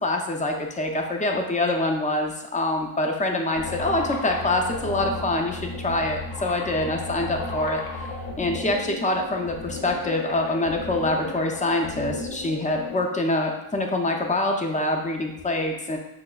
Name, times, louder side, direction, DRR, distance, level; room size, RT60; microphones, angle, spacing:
voice 1, 0.0-7.8 8.4-16.0, left 2 dB, 15° left, 2 dB, 0.4 m, -25 dB
sound 1, 3.6-13.0, left 2 dB, 65° left, 0.7 m, -34 dB
5.6 x 2.0 x 2.2 m, 0.92 s
cardioid pair, 80°, 50 cm